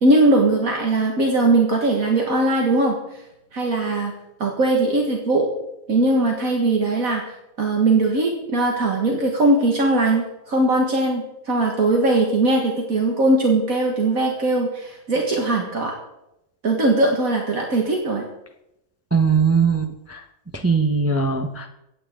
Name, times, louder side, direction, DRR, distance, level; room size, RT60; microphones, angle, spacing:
voice 1, 0.0-3.0 3.5-4.1 4.4-5.5 5.9-7.2 7.6-15.9 16.6-18.2, right 2 dB, 65° right, 0 dB, 2.1 m, -20 dB
voice 2, 19.1-20.2 20.5-21.7, right 5 dB, 15° right, 4 dB, 0.7 m, -20 dB
24.0 x 9.4 x 3.8 m, 0.86 s
omnidirectional pair, 1.6 m